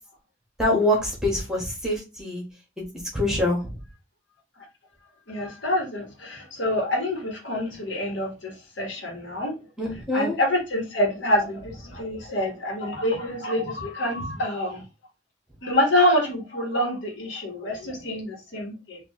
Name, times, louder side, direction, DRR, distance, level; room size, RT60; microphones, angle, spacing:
voice 1, 0.6-2.4 2.8-2.9 3.1-3.6 9.8-10.3, left 1 dB, 5° right, 1.3 m, -24 dB
voice 2, 5.3-9.5 10.1-14.8 15.6-19.0, left 1 dB, 80° left, 1.5 m, -26 dB
4.3 x 2.7 x 3.0 m
head